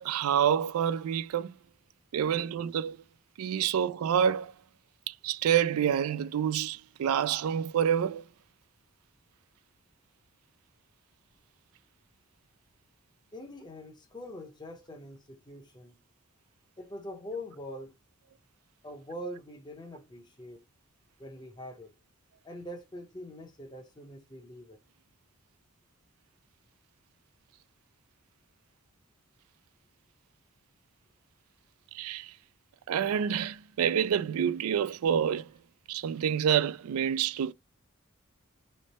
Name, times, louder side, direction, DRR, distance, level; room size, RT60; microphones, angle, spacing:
voice 1, 0.0-1.6 2.1-3.0 3.4-4.5 5.1-8.3 31.9-32.3 32.9-35.5 35.9-37.5, right 8 dB, 80° right, 0.3 m, -28 dB
voice 2, 13.3-16.0 16.8-17.9 18.8-20.7 21.2-21.9 22.4-24.8, left 1 dB, 20° left, 0.8 m, -43 dB
3.2 x 2.1 x 4.1 m
head